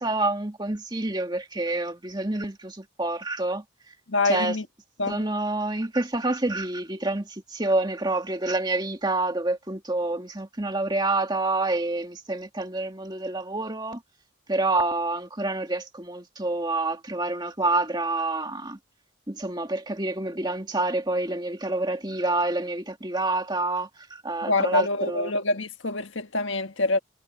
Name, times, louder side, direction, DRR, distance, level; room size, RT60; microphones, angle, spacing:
voice 1, 0.0-3.6 4.2-4.6 5.1-14.0 14.5-18.8 19.3-25.3, right 2 dB, 20° right, 2.0 m, -27 dB
voice 2, 4.1-4.6 5.0-5.2 24.4-27.0, left 2 dB, 65° left, 1.6 m, -25 dB
head